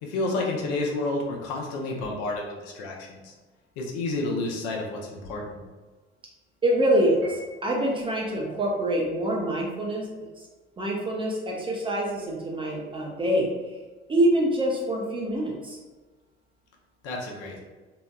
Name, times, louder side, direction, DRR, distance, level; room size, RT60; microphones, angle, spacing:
voice 1, 0.0-3.3 3.8-5.6 17.0-17.6, left 2 dB, 55° left, -1 dB, 0.6 m, -30 dB
voice 2, 6.6-10.1 10.4-10.5 10.8-13.5 14.1-15.8, right 1 dB, 15° right, -2 dB, 0.5 m, -25 dB
Piano, 7.2-8.1, right 2 dB, 45° right, 0.9 m, -46 dB
2.8 x 2.1 x 2.2 m, 1.3 s
figure-of-eight pair, 60°, 30 cm